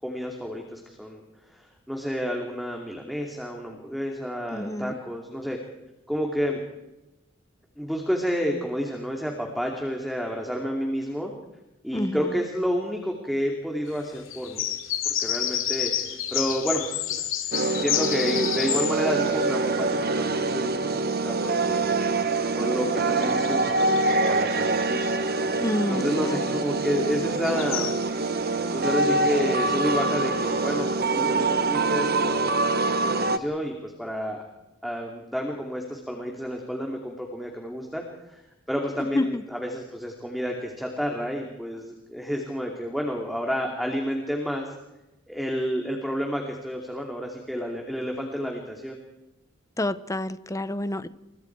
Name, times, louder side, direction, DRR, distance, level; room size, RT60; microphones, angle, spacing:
voice 1, 0.0-1.2 1.5-5.6 6.1-6.6 7.8-11.3 11.8-14.7 15.2-17.1 17.8-25.1 25.9-27.9 28.7-34.4 34.8-38.0 38.3-38.4 38.7-44.6 45.3-49.0, equal, ahead, 1 dB, 2.7 m, -30 dB
voice 2, 4.5-5.0 11.9-12.2 25.6-26.4 39.1-39.4 49.8-51.1, left 1 dB, 15° left, 13 dB, 1.0 m, -28 dB
sound 1, 14.1-20.7 21.1-30.9, left 10 dB, 75° left, 2.7 m, -32 dB
sound 2, 17.5-33.4, right 3 dB, 50° right, 1.2 m, -25 dB
29.5 x 24.0 x 4.7 m, 0.97 s
head